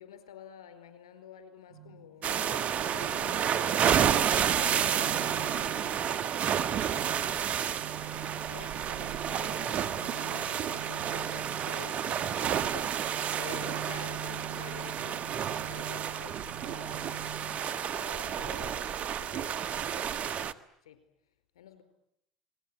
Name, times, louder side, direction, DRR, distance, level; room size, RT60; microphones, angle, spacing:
voice 1, 0.0-6.2 8.4-21.0 21.5-21.8, left 9 dB, 85° left, 9 dB, 4.5 m, -50 dB
sound 1, 1.7-17.8, right 8 dB, 90° right, 7.6 m, -46 dB
sound 2, 2.2-20.5, right 9 dB, 55° right, 1.4 m, -30 dB
29.0 x 21.0 x 9.7 m, 0.79 s
hypercardioid pair, 70°, 3 cm